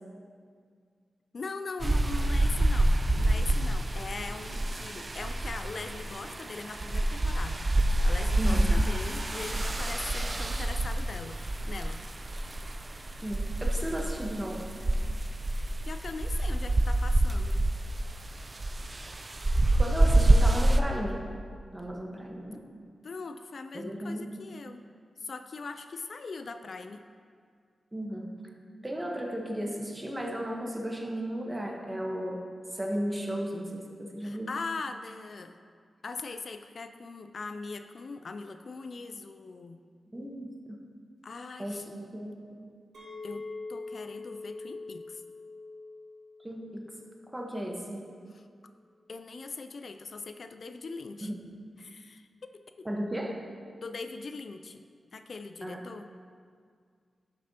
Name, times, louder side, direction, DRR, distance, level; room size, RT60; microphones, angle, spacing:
voice 1, 1.3-7.6 8.0-12.0 15.5-17.7 23.0-24.9 25.2-27.0 34.2-35.5 36.0-39.8 41.2-42.3 43.2-45.2 48.3-48.5 49.1-51.3 51.8-52.3 52.5-52.9 53.8-54.8 55.1-56.1, left 4 dB, 60° left, 8 dB, 0.3 m, -41 dB
sound 1, 1.8-20.8, right 1 dB, 35° right, 0.4 m, -27 dB
voice 2, 8.4-8.7 13.2-14.9 19.8-21.3 21.7-22.6 23.7-24.5 27.9-28.3 28.8-32.4 32.7-34.5 40.1-40.8 41.6-42.4 46.4-46.8 47.3-48.1 51.2-51.3 52.8-53.4 55.6-55.9, equal, 15° right, 0 dB, 1.2 m, -35 dB
Chink clink, 42.9-48.1, left 3 dB, 75° right, 1.9 m, -44 dB
11.5 x 6.7 x 2.9 m, 2.1 s
cardioid pair, 70°, 0 cm